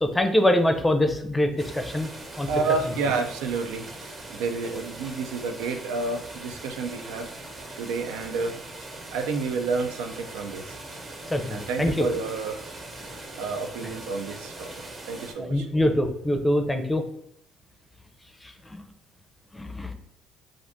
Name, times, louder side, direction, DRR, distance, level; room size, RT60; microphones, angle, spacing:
voice 1, 0.0-2.1 2.4-2.5 11.3-12.1 15.4-17.0 18.7-18.8 19.5-19.9, left 1 dB, 10° left, 5 dB, 0.5 m, -24 dB
sound 1, 1.6-15.3, right 2 dB, 45° right, 1.1 m, -41 dB
voice 2, 2.5-3.9 4.3-7.3 7.8-8.5 9.1-10.8 11.5-12.6 13.4-14.7 15.1-15.7, right 4 dB, 90° right, 5 dB, 0.3 m, -29 dB
2.5 x 2.5 x 3.4 m, 0.75 s
supercardioid pair, 75°, 0 cm